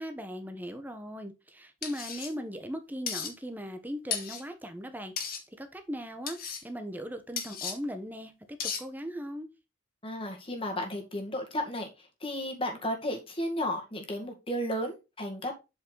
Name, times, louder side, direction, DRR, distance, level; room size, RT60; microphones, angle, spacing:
voice 1, 0.0-9.5, equal, 10° right, 1.1 m, -39 dB
sound 1, 1.8-2.3 3.1-3.3 4.1-4.4 5.2-5.4 6.3-6.6 7.4-7.7 8.6-8.8, left 7 dB, 50° left, 1.9 m, -34 dB
voice 2, 10.0-11.9 12.2-15.5, equal, 30° left, 1.9 m, -33 dB
8.0 x 5.5 x 4.0 m
head